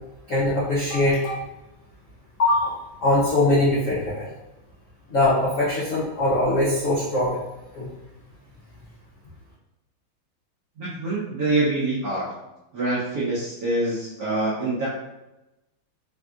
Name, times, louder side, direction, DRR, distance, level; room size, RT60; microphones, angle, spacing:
voice 1, 0.3-1.4 2.4-2.7 3.0-4.3 5.1-7.4 7.7-7.9, left 2 dB, 85° left, -8 dB, 0.6 m, -21 dB
voice 2, 10.8-12.3 12.7-14.9, right 2 dB, 70° right, -8 dB, 0.9 m, -25 dB
3.5 x 2.6 x 2.3 m, 0.97 s
omnidirectional pair, 2.3 m